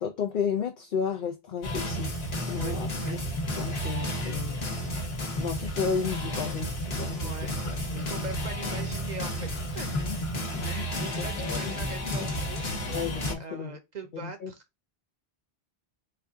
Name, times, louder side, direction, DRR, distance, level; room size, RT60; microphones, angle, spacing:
voice 1, 0.0-2.1 2.5-3.2 3.6-4.6 5.4-7.3 7.9-8.1 9.9-10.2 10.5-10.9 11.2-12.3 12.9-13.8 14.1-14.5, left 6 dB, 60° left, 0.7 m, -33 dB
sound 1, 1.6-13.4, equal, 80° left, 1.4 m, -32 dB
voice 2, 2.5-3.2 7.2-9.5 9.7-10.2 10.6-12.6 13.4-14.6, right 4 dB, 45° right, 0.8 m, -41 dB
4.5 x 2.3 x 3.4 m
omnidirectional pair, 1.0 m